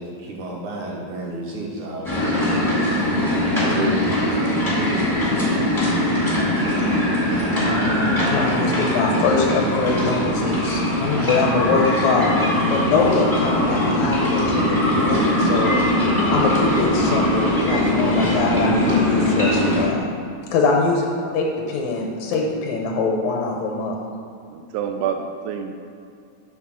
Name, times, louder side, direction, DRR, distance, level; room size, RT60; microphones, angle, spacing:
voice 1, 0.0-2.5 3.4-5.1 7.3-7.4, right 2 dB, 70° right, -3 dB, 1.9 m, -31 dB
sound 1, 2.0-19.9, left 1 dB, 25° left, 0.5 m, -21 dB
voice 2, 7.6-15.7 16.3-20.1 20.5-21.1 21.3-24.0, left 4 dB, 80° left, 0 dB, 1.6 m, -23 dB
voice 3, 20.8-21.3 24.5-25.7, right 7 dB, 85° right, 5 dB, 1.7 m, -28 dB
10.0 x 3.6 x 6.1 m, 2.4 s
omnidirectional pair, 4.1 m